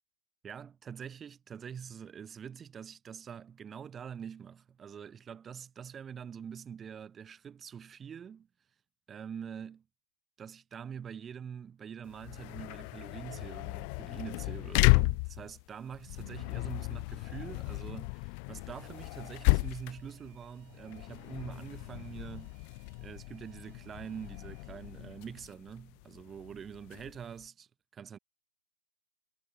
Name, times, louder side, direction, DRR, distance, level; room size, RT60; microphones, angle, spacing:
voice 1, 0.4-8.5 9.1-9.8 10.4-22.6 23.0-28.2, right 7 dB, 15° right, 2.2 m, -45 dB
sound 1, 12.1-27.4, left 40 dB or more, 30° left, 1.2 m, -33 dB
Alarm, 18.7-24.9, right 35 dB, 30° right, 7.0 m, -66 dB
figure-of-eight pair, 125°, 0 cm